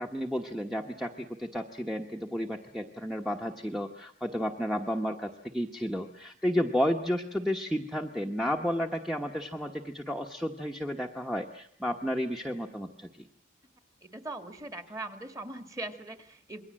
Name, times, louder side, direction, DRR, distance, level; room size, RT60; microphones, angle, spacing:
voice 1, 0.0-13.3, equal, ahead, 3 dB, 1.1 m, -32 dB
voice 2, 14.0-16.6, right 2 dB, 15° right, 9 dB, 2.0 m, -40 dB
27.5 x 21.5 x 7.6 m, 0.64 s
head